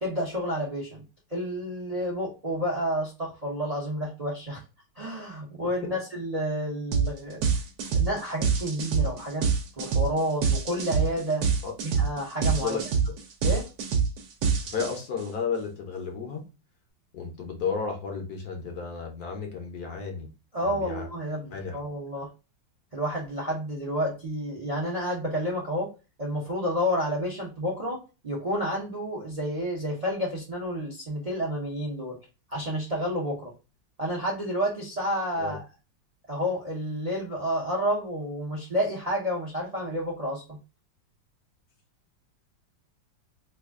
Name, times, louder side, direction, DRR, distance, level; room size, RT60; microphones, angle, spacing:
voice 1, 0.0-1.0 1.3-4.6 5.0-7.5 7.9-9.5 9.8-11.5 11.8-12.8 13.4-13.7 20.5-22.3 22.9-25.9 26.2-32.2 32.5-33.5 34.0-35.6 36.3-40.6, equal, 45° right, -2 dB, 0.5 m, -30 dB
sound 1, 6.9-7.1 7.4-15.2, right 6 dB, 65° right, 1.1 m, -25 dB
voice 2, 14.6-16.4 17.1-20.3 20.6-21.1 21.5-21.8 35.4-35.6, left 5 dB, 65° left, 3 dB, 1.1 m, -33 dB
3.3 x 2.4 x 3.5 m, 0.30 s
omnidirectional pair, 2.1 m